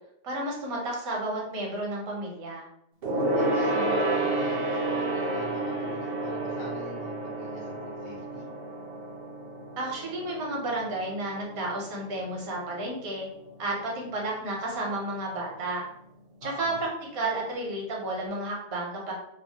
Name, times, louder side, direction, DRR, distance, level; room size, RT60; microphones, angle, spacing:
voice 1, 0.2-2.7 9.8-13.3 13.6-15.9 16.4-16.7 17.1-19.1, right 2 dB, 75° right, -2 dB, 1.2 m, -32 dB
Gong, 3.0-12.8 13.1-13.4 13.7-13.8, right 2 dB, 55° right, 0.7 m, -30 dB
voice 2, 3.3-8.5 16.4-16.8, left 1 dB, 60° left, -4 dB, 1.3 m, -43 dB
3.2 x 2.0 x 2.7 m, 0.76 s
omnidirectional pair, 1.5 m